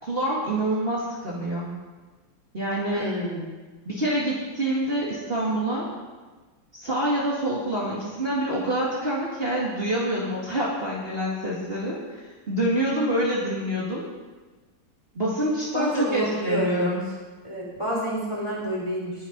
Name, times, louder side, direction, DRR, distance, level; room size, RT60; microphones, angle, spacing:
voice 1, 0.0-1.7 2.5-3.1 3.9-5.9 6.7-14.0 15.1-17.1, right 1 dB, 30° right, -6 dB, 2.3 m, -26 dB
voice 2, 2.9-3.5 15.7-16.9 17.4-19.1, right 1 dB, 15° left, -5 dB, 3.9 m, -28 dB
20.5 x 7.0 x 5.3 m, 1.3 s
omnidirectional pair, 2.0 m